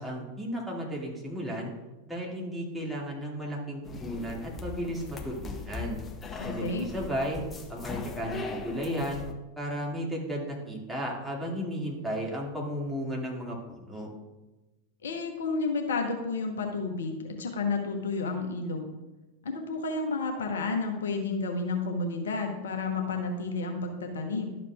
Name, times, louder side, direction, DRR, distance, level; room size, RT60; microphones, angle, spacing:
voice 1, 0.0-1.7 2.1-6.0 6.4-7.4 7.7-9.2 9.6-14.1, equal, 5° right, -3 dB, 2.3 m, -34 dB
sound 1, 3.8-9.3, left 4 dB, 20° left, 0.9 m, -40 dB
voice 2, 6.4-6.9 15.0-18.9 19.4-24.6, left 3 dB, 65° left, 3 dB, 1.0 m, -31 dB
12.0 x 7.1 x 2.4 m, 1.1 s
figure-of-eight pair, 90°, 0 cm